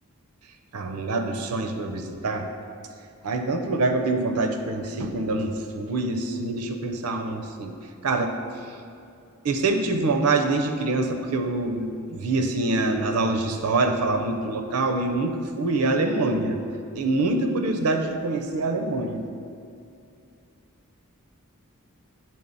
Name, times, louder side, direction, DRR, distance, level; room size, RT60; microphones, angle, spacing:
voice 1, 0.7-2.5 3.2-7.7 8.0-8.3 9.4-16.6 16.9-19.2, right 2 dB, 90° right, 5 dB, 0.6 m, -25 dB
10.0 x 3.7 x 4.0 m, 2.5 s
head